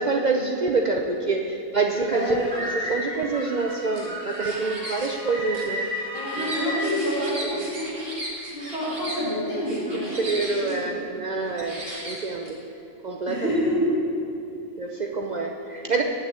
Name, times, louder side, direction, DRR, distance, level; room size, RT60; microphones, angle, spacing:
voice 1, 0.0-6.0 6.4-6.5 7.4-7.8 9.8-12.6 13.0-13.5 14.8-16.0, right 3 dB, 80° right, 1 dB, 0.4 m, -27 dB
sound 1, 1.8-7.0, equal, 5° left, 1.7 m, -33 dB
voice 2, 2.1-2.6 6.1-7.9 8.5-10.2 10.6-11.0 13.3-13.9, equal, 40° left, -9 dB, 3.3 m, -27 dB
sound 2, 3.7-5.1 5.5-9.2 9.6-10.8 11.4-12.5, right 1 dB, 35° right, 2.2 m, -36 dB
8.7 x 6.6 x 8.2 m, 2.7 s
omnidirectional pair, 1.5 m